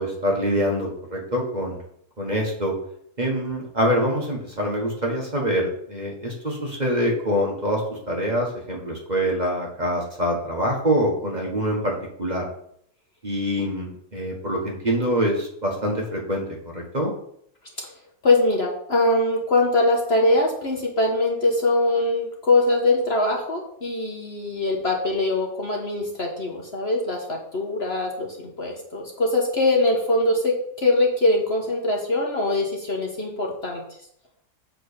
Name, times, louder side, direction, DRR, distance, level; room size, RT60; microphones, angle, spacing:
voice 1, 0.0-1.8 2.2-2.7 3.2-12.4 13.2-17.1, equal, 30° right, -1 dB, 1.4 m, -25 dB
voice 2, 18.2-33.8, left 2 dB, 45° left, 0 dB, 1.3 m, -22 dB
7.7 x 3.9 x 6.6 m, 0.69 s
omnidirectional pair, 1.7 m